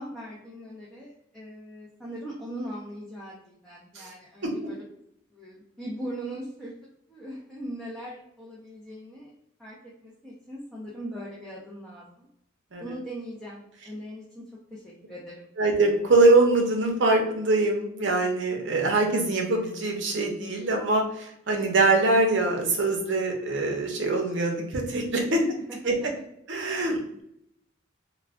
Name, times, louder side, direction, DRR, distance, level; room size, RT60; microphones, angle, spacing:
voice 1, 0.0-4.8 5.3-6.7 7.1-9.3 9.6-12.3 12.8-15.4 25.2-25.3 25.7-25.9, right 1 dB, 5° left, -7 dB, 0.5 m, -40 dB
voice 2, 15.6-25.4 25.8-25.9 26.5-27.2, right 2 dB, 65° right, 2 dB, 0.6 m, -23 dB
2.3 x 2.2 x 3.4 m, 0.76 s
head